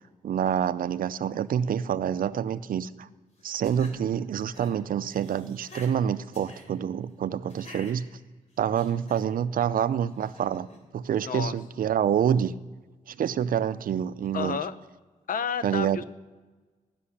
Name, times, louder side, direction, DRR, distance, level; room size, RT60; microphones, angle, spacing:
voice 1, 0.2-3.1 3.4-8.1 8.6-10.7 10.9-12.5 13.1-14.6 15.6-16.0, right 9 dB, 80° right, 15 dB, 0.5 m, -27 dB
sound 1, 3.4-4.0 4.4-4.7 5.0-5.9 6.3-6.6 7.5-7.9 8.5-9.2 10.1-10.8, left 1 dB, 50° left, 3.4 m, -48 dB
voice 2, 11.2-11.6 14.3-14.7 15.3-16.0, left 7 dB, 75° left, 14 dB, 0.7 m, -30 dB
17.0 x 6.1 x 9.9 m, 1.3 s
wide cardioid pair, 160°, 14 cm